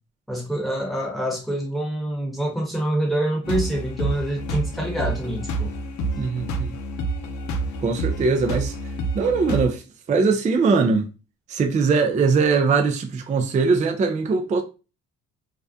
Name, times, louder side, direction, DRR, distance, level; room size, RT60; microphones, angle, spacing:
voice 1, 0.3-5.7, right 1 dB, ahead, 1.0 m, -26 dB
sound 1, 3.4-9.7, right 2 dB, 70° left, 0.5 m, -28 dB
voice 2, 6.2-6.8 7.8-8.8 9.1-9.8 10.1-11.1 11.5-14.6, right 4 dB, 25° right, 0.3 m, -21 dB
2.4 x 2.1 x 2.6 m
cardioid pair, 90°, 30 cm